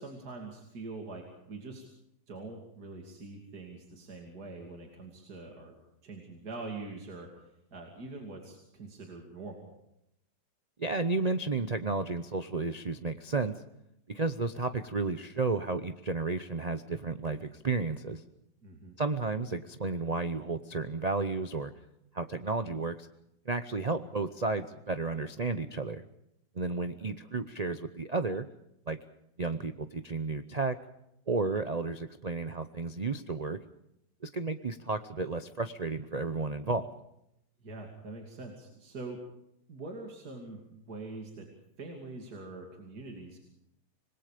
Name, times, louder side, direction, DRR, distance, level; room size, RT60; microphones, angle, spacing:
voice 1, 0.0-1.9 2.3-5.7 6.0-9.8 18.6-18.9 27.0-27.1 37.6-39.2 39.7-43.4, right 3 dB, 55° right, 1 dB, 3.2 m, -44 dB
voice 2, 10.8-13.6 14.1-18.2 19.0-21.7 22.1-23.1 23.5-26.1 26.5-28.5 28.9-29.0 29.4-30.7 31.3-33.6 34.2-36.9, right 3 dB, 75° right, 10 dB, 0.3 m, -32 dB
26.0 x 21.0 x 5.1 m, 0.82 s
omnidirectional pair, 1.9 m